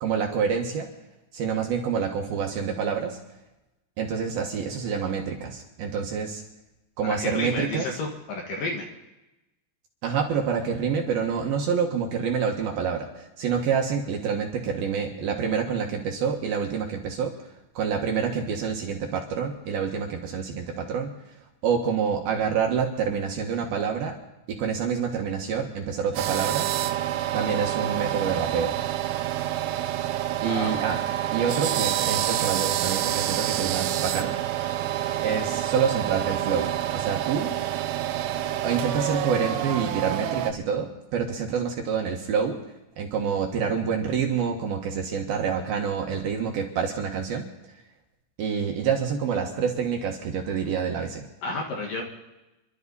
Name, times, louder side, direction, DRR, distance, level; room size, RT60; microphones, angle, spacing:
voice 1, 0.0-0.9 1.3-3.2 4.0-6.4 7.0-8.0 10.0-17.3 17.8-21.2 21.6-24.2 24.5-26.7 27.3-28.7 30.4-31.0 31.3-34.4 35.2-37.5 38.6-42.6 43.0-47.5 48.4-51.2, right 6 dB, 65° right, 1 dB, 2.8 m, -27 dB
voice 2, 7.0-8.8 30.4-30.8 51.4-52.0, left 2 dB, 60° left, 0 dB, 2.8 m, -31 dB
sound 1, 26.2-40.5, right 12 dB, 85° right, 3.3 m, -27 dB
30.0 x 12.0 x 4.1 m, 0.99 s
omnidirectional pair, 5.3 m